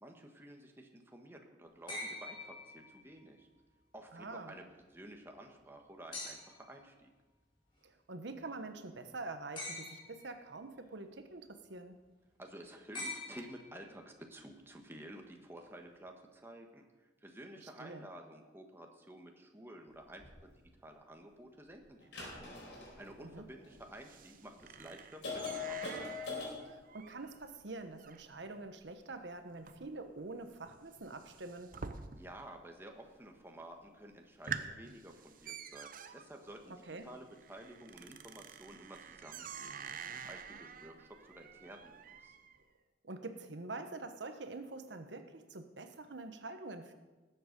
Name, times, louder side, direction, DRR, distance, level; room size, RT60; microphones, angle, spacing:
voice 1, 0.0-3.5 3.9-7.1 12.4-16.8 17.2-20.5 20.8-22.5 23.0-25.9 32.2-36.7 37.0-39.7 40.1-42.3, right 1 dB, 15° right, 3 dB, 1.3 m, -52 dB
sound 1, 1.9-3.3 6.1-6.7 9.5-10.3 12.9-14.0 15.6-15.7, left 2 dB, 30° left, 4.3 m, -44 dB
voice 2, 4.1-4.6 7.8-12.0 17.6-18.1 23.2-23.5 26.6-31.7 36.8-37.1 43.0-46.9, right 3 dB, 80° right, 8 dB, 1.1 m, -46 dB
sound 2, 20.2-20.3 22.0-23.9 24.6-24.7 25.2-26.5, left 4 dB, 70° left, 4.3 m, -42 dB
sound 3, 23.0-32.6 32.8-33.4 33.8-33.9 34.2-42.6, right 6 dB, 50° right, 0.7 m, -48 dB
19.0 x 7.9 x 5.3 m, 1.2 s
head